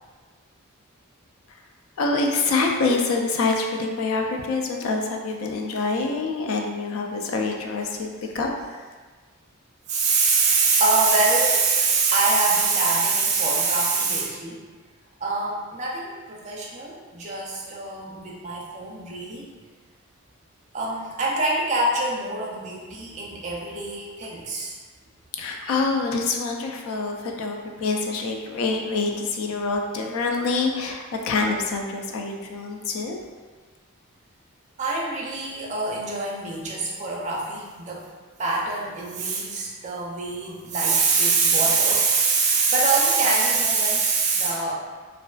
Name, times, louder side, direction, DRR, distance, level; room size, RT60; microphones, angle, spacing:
voice 1, 2.0-8.5 25.4-33.2, left 3 dB, 70° left, 2 dB, 0.3 m, -26 dB
voice 2, 9.9-14.6 15.2-19.5 20.7-24.8 34.8-38.1 38.4-44.7, right 4 dB, 30° right, -4 dB, 0.4 m, -24 dB
2.4 x 2.2 x 2.3 m, 1.4 s
head